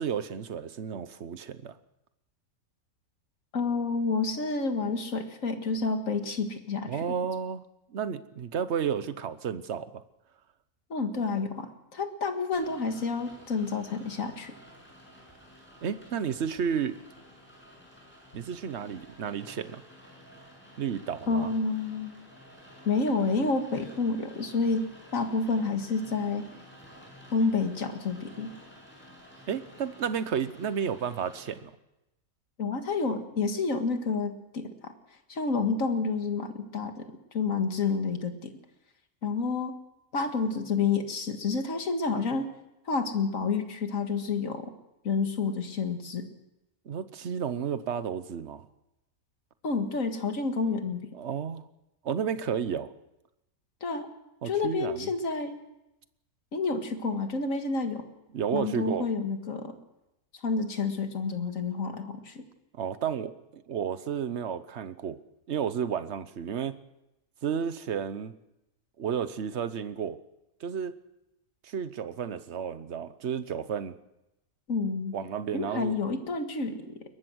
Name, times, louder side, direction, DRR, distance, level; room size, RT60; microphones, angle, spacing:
voice 1, 0.0-1.7 6.9-7.6 7.9-10.0 15.8-17.0 18.3-19.8 20.8-21.5 29.5-31.7 46.9-48.7 51.1-51.6 52.0-52.9 54.4-55.1 58.3-59.1 62.7-65.2 65.5-66.8 67.4-68.3 69.0-70.2 70.6-70.9 71.6-74.0 75.1-75.9, right 7 dB, 55° right, 13 dB, 1.1 m, -32 dB
voice 2, 3.5-7.0 10.9-14.5 21.3-22.1 22.9-24.8 25.1-26.5 27.3-28.5 32.6-34.9 35.3-38.5 39.2-39.7 40.1-42.5 42.9-44.7 45.0-46.3 49.6-51.0 53.8-54.1 54.4-55.6 56.5-58.0 58.5-59.7 60.4-62.4 74.7-75.2 75.5-76.9, left 4 dB, 65° left, 6 dB, 2.2 m, -29 dB
Rain, 12.5-31.5, equal, 5° left, 7.8 m, -52 dB
22.0 x 18.5 x 6.3 m, 0.92 s
omnidirectional pair, 1.5 m